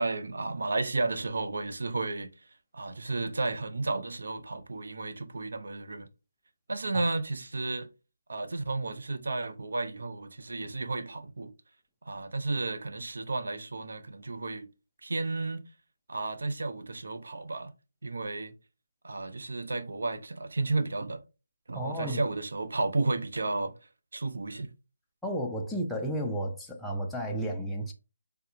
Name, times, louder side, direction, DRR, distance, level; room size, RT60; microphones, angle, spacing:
voice 1, 0.0-2.3 2.7-6.1 6.7-7.9 8.3-11.5 12.0-14.7 15.0-15.6 16.1-17.7 18.0-18.5 19.0-21.2 21.7-23.7 24.1-24.7, right 3 dB, 70° right, 0.6 m, -32 dB
voice 2, 21.7-22.2 25.2-27.9, right 1 dB, ahead, 0.3 m, -32 dB
3.4 x 2.8 x 2.4 m
hypercardioid pair, 175°, 0 cm